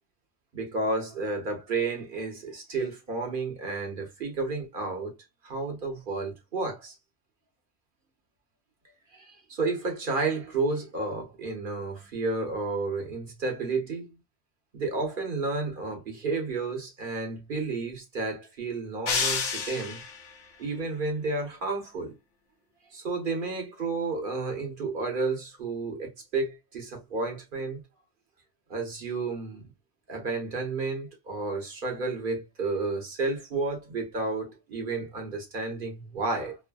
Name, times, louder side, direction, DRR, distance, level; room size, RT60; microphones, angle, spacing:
voice 1, 0.5-5.1 5.4-6.9 9.1-14.1 14.7-20.0 20.6-22.1 22.9-27.8 28.7-29.6 30.1-36.6, right 3 dB, 45° right, 1.1 m, -31 dB
sound 1, 19.1-20.3, left 5 dB, 85° left, 1.1 m, -29 dB
3.3 x 2.1 x 2.2 m
omnidirectional pair, 1.2 m